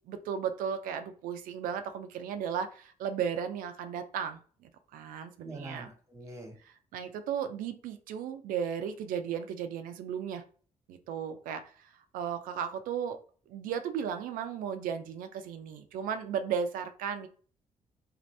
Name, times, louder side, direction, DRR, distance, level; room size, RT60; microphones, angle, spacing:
voice 1, 0.1-5.9 6.9-10.4 10.9-11.9 12.1-13.2 13.5-17.3, right 8 dB, 85° right, 9 dB, 0.4 m, -35 dB
voice 2, 5.4-6.6, right 2 dB, 20° right, 2 dB, 1.1 m, -44 dB
2.6 x 2.5 x 3.1 m, 0.42 s
supercardioid pair, 60°, 14 cm